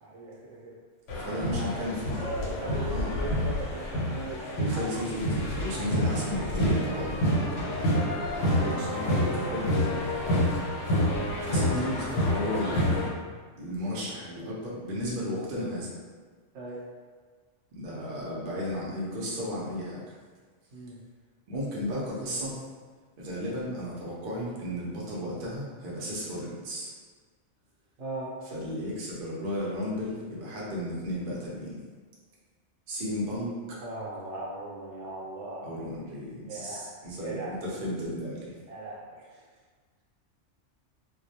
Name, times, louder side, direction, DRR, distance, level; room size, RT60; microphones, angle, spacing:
voice 1, 0.0-0.7 1.2-1.9 2.4-4.4 7.1-8.1 8.3-8.5 10.1-10.5 16.5-16.8 20.7-21.0 28.0-28.3 33.8-35.7 36.5-36.9 37.2-37.5 38.7-39.3, right 2 dB, 80° right, -5 dB, 0.9 m, -39 dB
sound 1, 1.1-13.1, equal, 85° left, 1.0 m, -28 dB
voice 2, 1.2-2.4 2.9-3.1 4.6-7.1 8.6-9.9 11.4-13.1 13.6-15.9 17.7-20.2 21.5-22.6 23.2-26.9 28.5-31.8 32.9-33.8 35.6-38.6, equal, 55° right, -6 dB, 0.7 m, -34 dB
2.2 x 2.1 x 2.7 m, 1.5 s
omnidirectional pair, 1.2 m